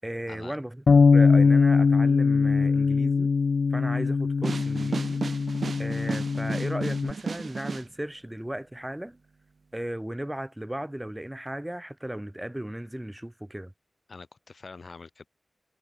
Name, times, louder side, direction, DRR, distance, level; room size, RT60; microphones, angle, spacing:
voice 1, 0.0-3.3 3.7-5.3 5.8-9.2 9.7-13.7, right 1 dB, 10° right, 7.0 m, -36 dB
Bass guitar, 0.9-7.1, left 5 dB, 80° left, 1.5 m, -22 dB
sound 1, 4.4-7.9, right 4 dB, 80° right, 2.1 m, -34 dB
voice 2, 14.1-15.3, left 4 dB, 65° left, 6.1 m, -45 dB
wide cardioid pair, 85°, 0 cm